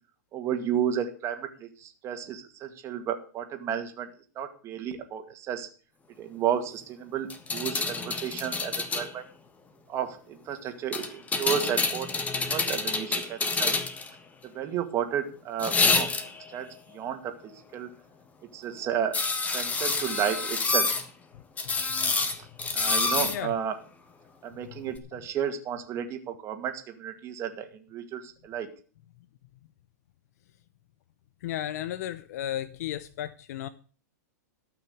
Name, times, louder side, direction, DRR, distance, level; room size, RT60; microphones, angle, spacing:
voice 1, 0.3-4.1 4.4-5.7 6.2-9.2 9.9-12.1 12.4-13.7 14.4-16.1 16.5-17.3 17.7-17.9 18.5-20.9 22.7-23.7 24.4-28.7, right 9 dB, 30° right, 2.2 m, -32 dB
sound 1, 7.3-9.1 10.9-14.1 15.6-16.5 19.1-21.0 21.6-23.4 25.0-25.1, left 4 dB, 15° left, 1.5 m, -27 dB
voice 2, 23.2-23.6 31.4-33.7, left 12 dB, 65° left, 0.8 m, -34 dB
13.5 x 6.1 x 8.1 m
hypercardioid pair, 125°, 9 cm